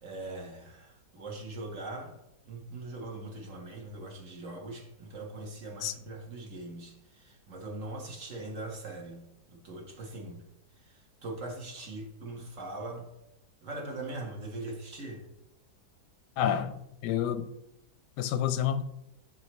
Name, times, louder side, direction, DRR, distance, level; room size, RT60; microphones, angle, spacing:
voice 1, 0.0-2.2 2.5-9.2 9.5-10.4 10.8-13.1 13.6-15.2, right 2 dB, 50° right, 0 dB, 1.7 m, -41 dB
voice 2, 16.4-17.5 18.2-18.8, left 9 dB, 90° left, 12 dB, 1.2 m, -29 dB
7.6 x 7.3 x 3.2 m, 0.87 s
omnidirectional pair, 1.8 m